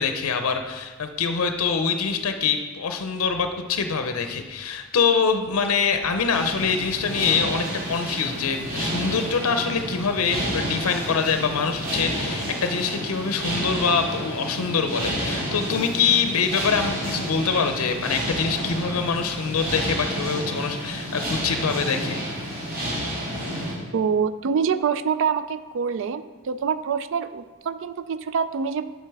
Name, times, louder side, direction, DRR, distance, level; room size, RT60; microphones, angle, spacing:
voice 1, 0.0-22.2, left 5 dB, 70° left, 7 dB, 0.6 m, -24 dB
sound 1, 6.3-23.7, equal, 40° right, 2.4 m, -30 dB
voice 2, 23.9-28.9, right 6 dB, 60° right, 13 dB, 0.3 m, -25 dB
7.7 x 6.7 x 4.7 m, 1.3 s
head